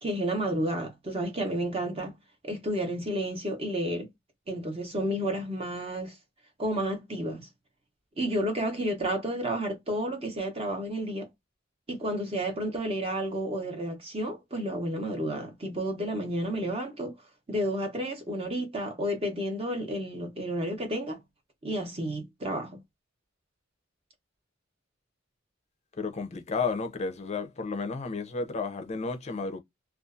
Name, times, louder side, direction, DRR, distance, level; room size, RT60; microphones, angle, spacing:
voice 1, 0.0-2.1 2.4-4.1 4.5-6.2 6.6-7.5 8.2-11.3 11.9-17.1 17.5-21.2 21.6-22.8, right 1 dB, 30° right, 0.8 m, -31 dB
voice 2, 25.9-29.6, left 4 dB, 35° left, 0.5 m, -32 dB
2.6 x 2.3 x 2.4 m
head